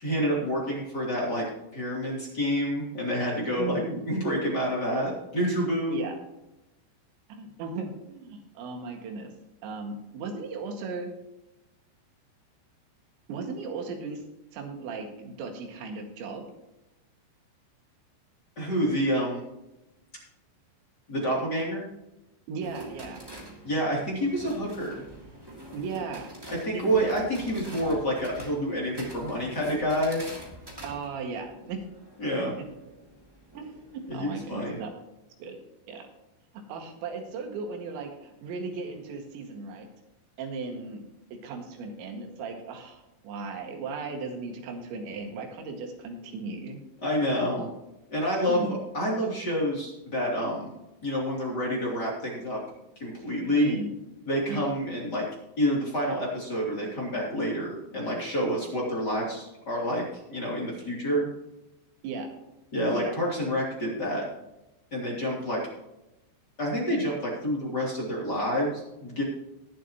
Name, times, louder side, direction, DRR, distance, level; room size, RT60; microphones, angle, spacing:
voice 1, 0.0-1.4 1.7-6.1 18.6-19.4 21.1-21.8 23.6-25.0 26.5-30.2 32.2-32.5 34.1-34.8 47.0-47.7 48.1-50.7 51.0-52.6 53.0-53.8 54.3-55.2 55.6-60.0 60.3-61.3 62.7-64.2 64.9-65.6 66.6-69.2, equal, 25° left, -4 dB, 2.7 m, -28 dB
voice 2, 3.6-4.0 5.9-6.2 7.3-9.3 9.6-11.1 13.3-14.2 14.5-16.5 22.5-23.2 25.7-26.3 26.7-27.0 30.8-31.8 32.6-32.7 33.5-34.9 35.4-35.6 35.9-36.0 36.7-39.9 40.4-46.8 48.5-48.8 53.6-53.9 54.5-54.7 62.0-62.3 62.9-63.1, right 4 dB, 75° right, 3 dB, 4.1 m, -36 dB
sound 1, 22.6-34.9, right 1 dB, 15° right, 0.8 m, -46 dB
21.5 x 7.3 x 3.0 m, 0.94 s
omnidirectional pair, 5.4 m